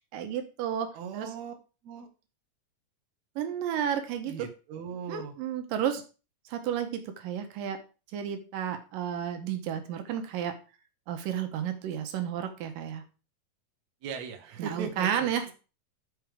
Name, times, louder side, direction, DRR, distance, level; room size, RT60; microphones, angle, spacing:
voice 1, 0.0-0.9 1.1-1.3 3.4-4.5 5.1-6.0 6.5-7.8 8.1-10.6 11.1-13.0 14.6-15.5, right 9 dB, 85° right, 6 dB, 2.6 m, -32 dB
voice 2, 0.9-1.5 1.8-2.1 4.3-5.4 14.0-15.5, right 6 dB, 65° right, 5 dB, 2.2 m, -39 dB
13.0 x 4.8 x 3.5 m, 0.34 s
omnidirectional pair, 3.9 m